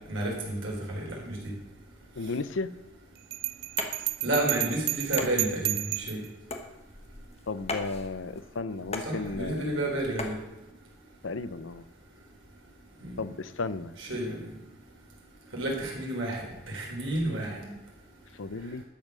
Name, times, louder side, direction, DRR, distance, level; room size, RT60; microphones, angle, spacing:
voice 1, 0.1-1.4 4.2-6.2 9.0-10.4 13.0-13.1 14.0-14.5 15.5-17.6, right 1 dB, 85° right, -1 dB, 4.0 m, -31 dB
voice 2, 2.1-2.7 7.5-10.0 11.2-11.8 13.2-13.9 18.4-18.8, left 3 dB, 90° left, 14 dB, 0.7 m, -34 dB
Bell, 3.3-6.3, right 18 dB, 50° right, 0.3 m, -31 dB
sound 1, 3.7-10.4, left 3 dB, 30° left, 1.3 m, -39 dB
12.0 x 7.6 x 6.5 m, 0.99 s
head